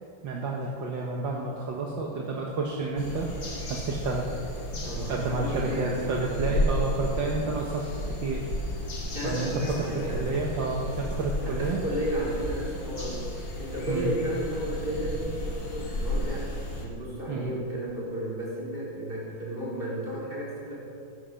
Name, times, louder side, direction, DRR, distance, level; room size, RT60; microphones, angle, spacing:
voice 1, 0.2-3.3 3.7-4.3 4.7-7.8 8.2-8.4 9.2-9.5 9.8-11.8 13.9-14.2 17.3-17.6, right 3 dB, 65° right, -1 dB, 1.9 m, -30 dB
sound 1, 3.0-16.8, left 1 dB, 55° left, 2.9 m, -33 dB
voice 2, 4.8-6.2 9.1-10.3 11.4-15.3 15.6-16.5 16.8-20.7, right 1 dB, 25° right, -6 dB, 4.2 m, -33 dB
16.0 x 10.5 x 6.4 m, 2.5 s
omnidirectional pair, 2.3 m